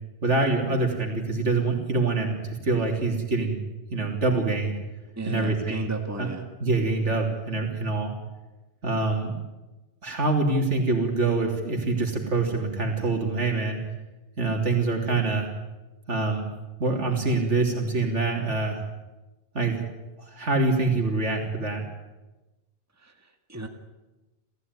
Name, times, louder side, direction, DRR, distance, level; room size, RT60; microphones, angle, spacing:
voice 1, 0.2-3.6 3.9-4.8 5.3-5.9 6.2-6.3 6.6-8.1 8.8-9.3 10.0-13.8 14.4-15.5 16.1-16.5 16.8-18.8 19.5-21.8, right 3 dB, 80° right, 1 dB, 3.5 m, -25 dB
voice 2, 5.2-6.4 23.0-23.1 23.5-23.7, right 2 dB, 15° right, 4 dB, 2.0 m, -34 dB
28.5 x 15.5 x 9.7 m, 1.1 s
omnidirectional pair, 1.2 m